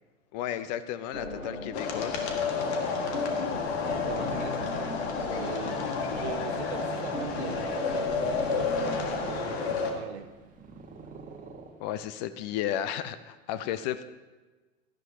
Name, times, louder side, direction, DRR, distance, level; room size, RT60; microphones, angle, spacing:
voice 1, 0.3-2.9 11.8-14.0, left 11 dB, 35° left, 13 dB, 0.5 m, -34 dB
sound 1, 1.1-2.4 2.7-9.1, left 1 dB, 80° left, 2.4 m, -40 dB
sound 2, 1.7-9.9, left 4 dB, 55° left, 1.8 m, -30 dB
voice 2, 4.1-10.3, right 9 dB, 55° right, 9 dB, 1.1 m, -41 dB
Purr, 6.8-12.2, right 3 dB, 20° right, 1.5 m, -48 dB
17.0 x 12.5 x 2.8 m, 1.2 s
figure-of-eight pair, 90°, 39 cm